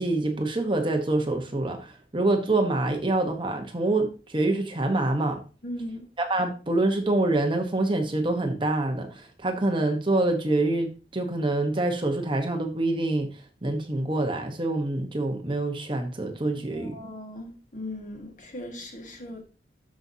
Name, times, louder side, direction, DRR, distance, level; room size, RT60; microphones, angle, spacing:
voice 1, 0.0-5.4 6.2-13.3 13.6-16.9, right 2 dB, 30° right, 1.1 m, -26 dB
voice 2, 5.6-6.1 16.7-19.4, left 1 dB, 45° left, 1.8 m, -38 dB
12.5 x 5.4 x 2.8 m
head